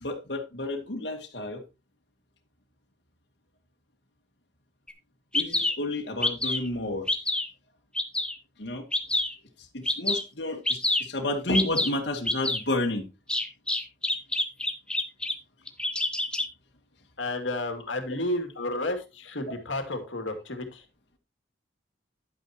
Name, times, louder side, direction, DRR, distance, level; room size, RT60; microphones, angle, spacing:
voice 1, 0.0-1.6 5.3-7.0 8.6-8.8 9.7-13.0, left 2 dB, 65° left, 2 dB, 2.3 m, -30 dB
Bird vocalization bird call bird song, 4.9-5.0 5.3-5.7 6.2-6.7 7.1-7.5 8.0-8.4 8.9-9.3 9.9-10.2 10.7-11.0 11.5-11.9 12.3-12.6 13.3-15.3 15.7-16.5, left 2 dB, 5° left, 1.0 m, -26 dB
voice 2, 17.2-20.8, left 1 dB, 85° left, 6 dB, 2.4 m, -31 dB
11.0 x 9.3 x 2.9 m, 0.27 s
head